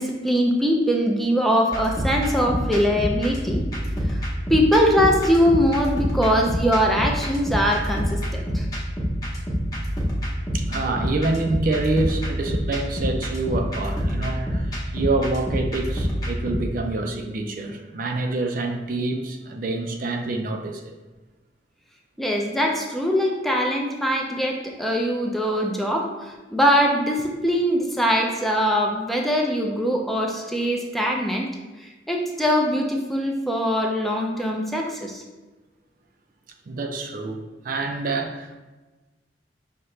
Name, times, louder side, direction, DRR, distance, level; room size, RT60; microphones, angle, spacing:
voice 1, 0.0-3.6 4.1-4.2 4.5-8.7 22.2-31.5 31.8-35.2, equal, ahead, 0 dB, 0.4 m, -22 dB
sound 1, 1.7-16.6, equal, 20° left, 0.9 m, -27 dB
voice 2, 10.5-20.9 36.7-38.6, right 2 dB, 50° right, 4 dB, 0.5 m, -27 dB
5.5 x 2.9 x 3.2 m, 1.2 s
head